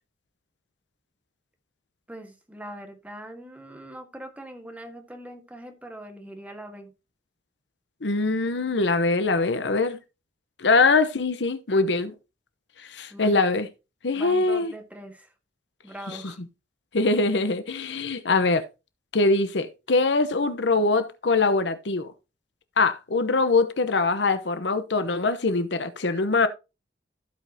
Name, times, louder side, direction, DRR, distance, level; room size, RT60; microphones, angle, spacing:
voice 1, 2.1-6.9 13.1-13.4 14.1-15.3 15.8-16.4, right 1 dB, 10° right, 1.5 m, -42 dB
voice 2, 8.0-10.0 10.6-12.1 12.9-13.7 14.0-14.7 16.1-16.2 16.9-18.6 19.1-22.1 22.8-26.5, left 3 dB, 70° left, 0.8 m, -23 dB
15.5 x 5.3 x 2.8 m
head